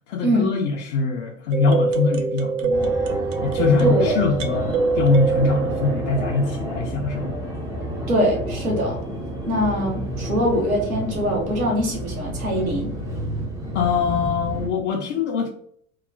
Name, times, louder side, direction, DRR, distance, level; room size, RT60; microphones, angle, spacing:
voice 1, 0.1-3.0 3.4-7.4 13.7-15.5, left 4 dB, 60° left, 0.5 m, -23 dB
sound 1, 1.5-6.6, right 4 dB, 65° right, 0.5 m, -24 dB
Fixed-wing aircraft airplane, 2.7-14.7, right 1 dB, 10° right, 0.3 m, -30 dB
voice 2, 3.8-4.2 8.1-9.0 9.5-12.9, equal, 85° right, 0.9 m, -22 dB
3.0 x 2.0 x 2.4 m
figure-of-eight pair, 70°, 41 cm